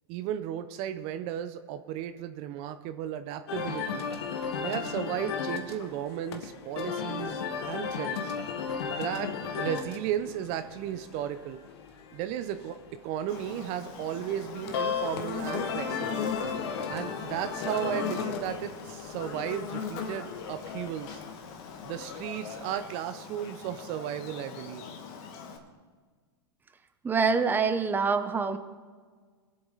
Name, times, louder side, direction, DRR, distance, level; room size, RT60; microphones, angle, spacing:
voice 1, 0.1-4.0 4.6-8.3 8.9-11.6 12.1-12.8 13.0-16.2 16.9-21.2 21.8-24.8, right 10 dB, 45° right, 10 dB, 0.7 m, -35 dB
sound 1, 3.5-22.8, left 6 dB, 65° left, 1.5 m, -36 dB
Buzz, 13.3-25.6, left 6 dB, 50° left, 1.8 m, -39 dB
voice 2, 27.0-28.6, right 5 dB, 15° right, 8 dB, 0.8 m, -25 dB
21.5 x 7.8 x 4.0 m, 1.6 s
hypercardioid pair, 115°, 14 cm